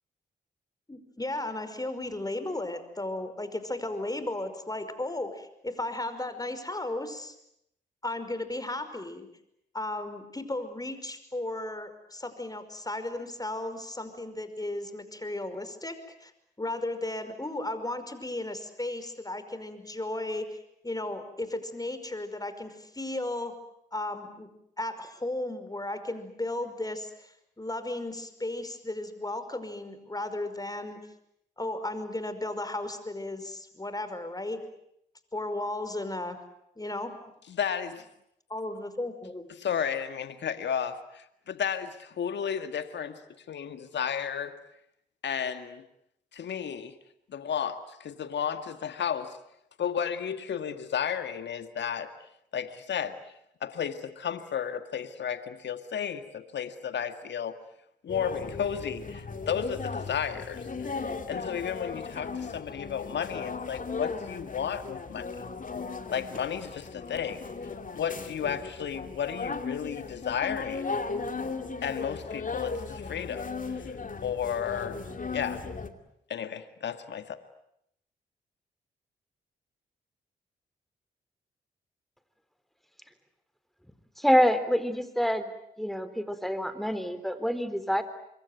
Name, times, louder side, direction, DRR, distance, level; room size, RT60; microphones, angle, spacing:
voice 1, 0.9-7.4 8.0-9.3 9.7-16.3 16.6-20.6 20.8-23.5 23.9-24.5 24.8-31.0 31.6-34.6 35.3-36.4 36.8-37.1 38.5-39.5, left 2 dB, 20° left, 10 dB, 5.5 m, -35 dB
voice 2, 37.5-38.0 39.6-43.2 43.5-44.6 45.2-45.8 46.3-47.0 47.3-49.4 49.8-52.1 52.5-53.2 53.6-57.6 58.0-65.3 66.1-67.5 67.9-71.0 71.8-74.0 74.2-75.0 75.3-75.6 76.3-77.4, left 8 dB, 65° left, 10 dB, 2.0 m, -33 dB
sound 1, 58.1-75.9, left 4 dB, 40° left, 2.6 m, -37 dB
voice 3, 84.2-85.5 85.8-88.0, equal, ahead, 11 dB, 3.8 m, -26 dB
26.0 x 22.5 x 9.3 m, 0.76 s
hypercardioid pair, 40°, 20 cm